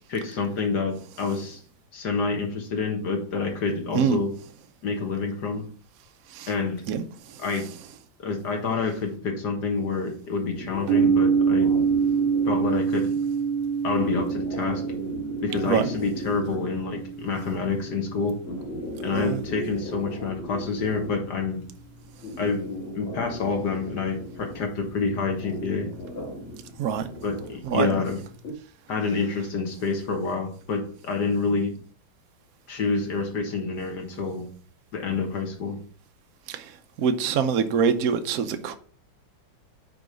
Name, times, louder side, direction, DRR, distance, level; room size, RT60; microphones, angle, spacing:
voice 1, 0.1-1.6 1.9-4.3 4.8-5.7 6.5-6.8 7.4-7.6 8.2-11.7 12.5-13.2 13.8-14.8 15.4-18.4 19.0-21.6 22.4-22.7 22.9-25.9 27.2-28.2 28.9-31.7 32.7-34.5 34.9-35.8, left 4 dB, 60° left, 1.9 m, -28 dB
sound 1, 10.5-28.5, equal, 75° left, 2.6 m, -38 dB
sound 2, 10.9-18.7, right 6 dB, 80° right, 1.6 m, -26 dB
voice 2, 37.0-38.7, right 7 dB, 65° right, 0.9 m, -24 dB
6.1 x 4.8 x 5.1 m
omnidirectional pair, 2.2 m